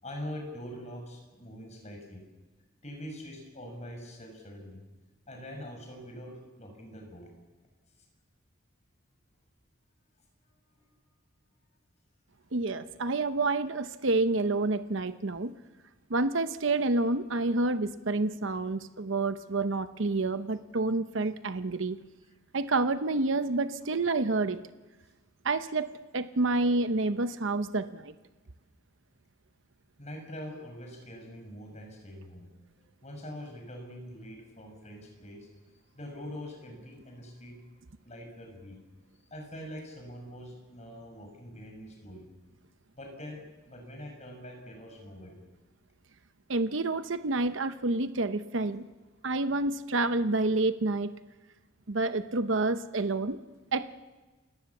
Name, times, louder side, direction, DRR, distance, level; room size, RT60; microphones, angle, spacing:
voice 1, 0.0-2.2 2.8-4.8 5.3-7.3 23.9-24.1 30.0-32.5 32.8-35.5 35.9-37.6 38.0-38.8 39.3-42.3 42.9-45.4, equal, 35° left, 2 dB, 6.4 m, -44 dB
voice 2, 12.5-15.5 16.1-22.0 22.5-24.6 25.4-25.9 26.1-28.1 46.5-48.9 49.2-51.1 51.9-53.4 53.7-53.9, right 2 dB, 65° right, 11 dB, 0.9 m, -28 dB
29.5 x 18.0 x 7.3 m, 1.2 s
head